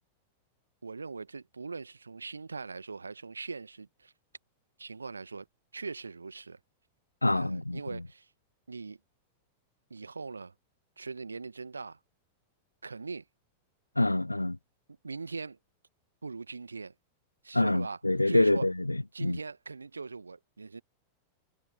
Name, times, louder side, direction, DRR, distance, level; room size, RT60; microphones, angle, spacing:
voice 1, 0.8-4.1 4.8-5.5 5.7-6.6 7.3-8.3 8.7-9.0 9.9-10.5 11.0-12.0 12.8-13.2 15.0-15.6 16.2-16.9 17.4-18.0 18.3-18.7 19.1-20.8, right 4 dB, 75° right, 1.4 m, -40 dB
voice 2, 7.2-8.0 14.0-14.6 17.5-19.4, left 2 dB, 85° left, 0.6 m, -26 dB
figure-of-eight pair, 90°, 0 cm